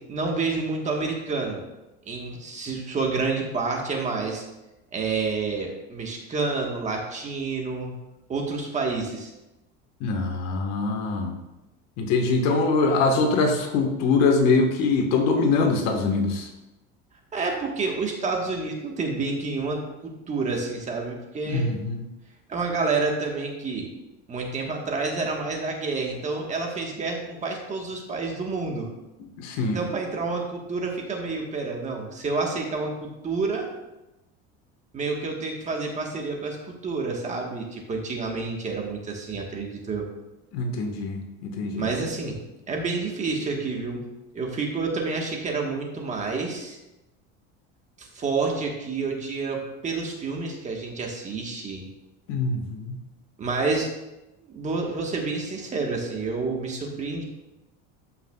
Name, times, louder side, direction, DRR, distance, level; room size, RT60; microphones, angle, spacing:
voice 1, 0.0-1.6 2.1-4.4 4.9-7.9 8.3-9.3 17.3-21.7 22.5-23.9 24.3-28.9 29.7-33.7 34.9-40.1 41.8-42.4 42.7-44.0 44.3-46.8 48.0-51.8 53.4-53.9 54.5-57.2, right 4 dB, 25° right, 1 dB, 1.4 m, -29 dB
voice 2, 10.0-11.3 12.0-16.5 21.4-22.0 29.2-29.8 40.5-41.9 52.3-53.0, left 3 dB, 60° left, 4 dB, 1.5 m, -23 dB
13.5 x 5.8 x 2.4 m, 0.98 s
cardioid pair, 140°, 29 cm